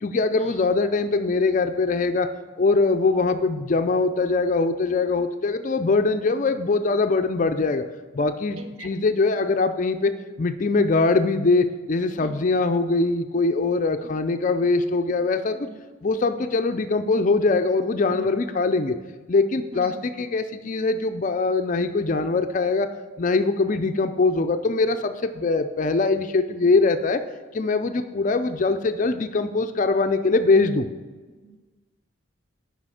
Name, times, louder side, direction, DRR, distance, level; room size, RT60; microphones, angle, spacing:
voice 1, 0.0-2.3 2.6-7.8 8.1-10.1 10.4-15.7 16.0-19.0 19.3-22.9 23.2-27.2 27.5-30.9, left 3 dB, 40° left, 8 dB, 0.4 m, -22 dB
voice 2, 8.6-8.9 12.2-12.4 13.9-14.1 15.5-15.8 18.1-18.2 19.7-19.9 23.7-23.8 31.4-31.6, right 1 dB, 80° right, 5 dB, 1.0 m, -42 dB
7.6 x 5.6 x 6.2 m, 1.3 s
head